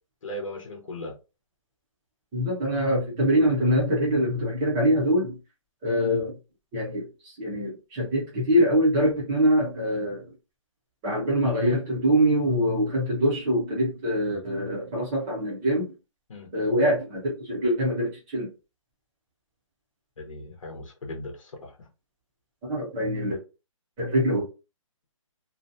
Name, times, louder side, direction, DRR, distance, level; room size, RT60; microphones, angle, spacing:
voice 1, 0.2-1.1 16.3-16.5 20.2-21.9, left 1 dB, 70° left, 1 dB, 0.8 m, -38 dB
voice 2, 2.3-5.4 5.8-6.4 6.7-10.3 11.0-15.9 16.5-18.5 22.7-23.4 24.0-24.4, equal, 10° right, -3 dB, 0.4 m, -24 dB
2.5 x 2.1 x 2.6 m, 0.30 s
hypercardioid pair, 170°, 17 cm